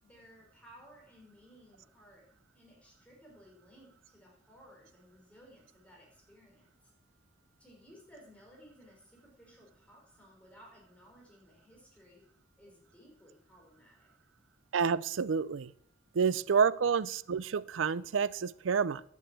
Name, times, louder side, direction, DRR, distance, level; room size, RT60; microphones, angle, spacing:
voice 1, 0.0-6.9 7.6-12.3 12.6-14.1, equal, 5° left, -1 dB, 4.3 m, -58 dB
voice 2, 14.7-15.7 16.1-19.0, right 6 dB, 85° right, 19 dB, 0.5 m, -29 dB
11.0 x 6.3 x 8.3 m, 0.70 s
head